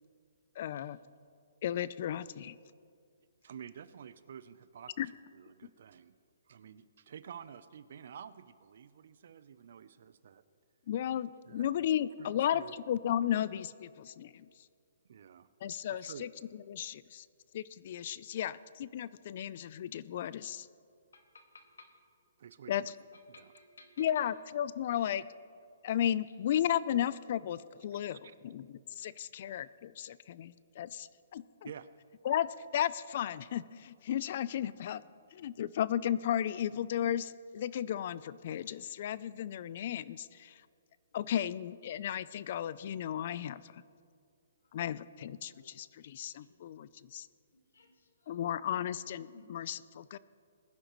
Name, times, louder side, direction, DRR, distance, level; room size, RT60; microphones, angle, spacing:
voice 1, 0.6-1.0 1.6-2.6 5.0-5.1 10.9-14.5 15.6-16.3 16.7-17.3 17.5-20.7 22.7-22.9 24.0-25.3 25.8-28.2 28.4-31.7 32.2-35.0 35.3-40.5 41.1-43.8 44.7-47.3 48.3-50.2, left 10 dB, 45° left, 18 dB, 0.4 m, -34 dB
voice 2, 3.4-5.0 5.3-6.1 6.5-10.4 11.5-11.7 12.2-12.7 15.1-15.5 15.9-16.3 22.4-22.9 23.3-23.5 28.0-28.3 31.6-31.9, right 8 dB, 55° right, 14 dB, 0.6 m, -50 dB
voice 3, 21.1-21.9 23.3-24.0 45.6-45.7 46.4-46.6 47.7-47.9 49.2-49.5, left 3 dB, 85° left, 4 dB, 1.9 m, -57 dB
21.0 x 10.5 x 3.1 m, 2.3 s
hypercardioid pair, 160°, 0 cm